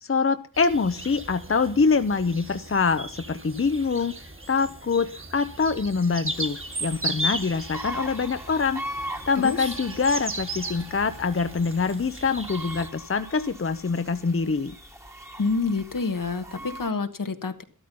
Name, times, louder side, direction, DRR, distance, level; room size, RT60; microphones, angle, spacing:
voice 1, 0.0-4.1 4.5-8.8 9.3-14.7, left 4 dB, 40° left, 10 dB, 0.8 m, -25 dB
sound 1, 0.5-12.9, right 1 dB, 40° right, 2.1 m, -36 dB
sound 2, 6.3-16.9, right 1 dB, 10° right, 1.6 m, -41 dB
voice 2, 15.4-17.6, left 4 dB, 80° left, 7 dB, 1.5 m, -28 dB
13.0 x 12.5 x 5.4 m, 0.38 s
wide cardioid pair, 60°, 32 cm